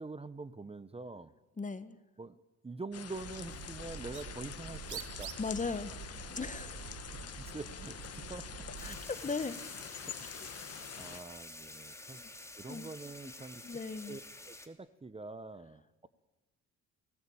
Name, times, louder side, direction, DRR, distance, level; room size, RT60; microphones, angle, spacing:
voice 1, 0.0-1.3 2.2-5.4 7.4-8.5 8.8-9.0 10.1-10.6 10.9-12.2 12.6-13.6 14.1-14.2 14.5-16.1, right 3 dB, 20° right, 14 dB, 1.2 m, -45 dB
voice 2, 1.6-2.0 5.4-5.9 6.3-6.8 8.8-9.6 12.2-12.3 12.7-12.9 13.6-14.2, left 4 dB, 25° left, 13 dB, 1.6 m, -37 dB
sound 1, 2.9-11.2, left 8 dB, 55° left, 1.9 m, -46 dB
Bird, 3.1-9.1, right 7 dB, 80° right, 2.5 m, -47 dB
sound 2, 8.8-14.7, left 2 dB, 10° left, 3.0 m, -49 dB
30.0 x 19.5 x 8.8 m, 1.1 s
cardioid pair, 90°, 30 cm